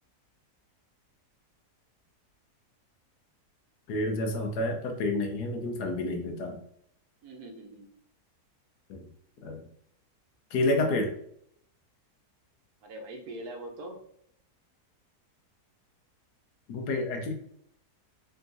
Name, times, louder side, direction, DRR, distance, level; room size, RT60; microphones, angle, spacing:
voice 1, 3.9-6.6 8.9-9.1 9.4-9.7 10.5-11.1 16.7-17.3, left 2 dB, 80° left, 4 dB, 1.3 m, -29 dB
voice 2, 7.2-7.9 12.8-14.0, right 1 dB, 70° right, 2 dB, 1.3 m, -42 dB
3.9 x 3.5 x 2.6 m, 0.68 s
omnidirectional pair, 1.7 m